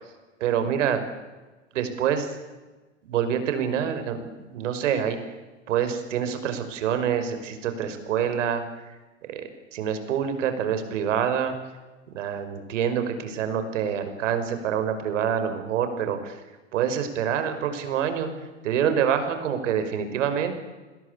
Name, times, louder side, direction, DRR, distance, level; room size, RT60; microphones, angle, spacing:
voice 1, 0.4-1.0 1.7-2.3 3.0-5.2 5.7-8.6 9.3-11.5 12.1-16.4 16.7-18.3 18.6-20.5, right 8 dB, 75° right, 8 dB, 5.7 m, -26 dB
29.5 x 21.5 x 8.4 m, 1.2 s
hypercardioid pair, 120°, 38 cm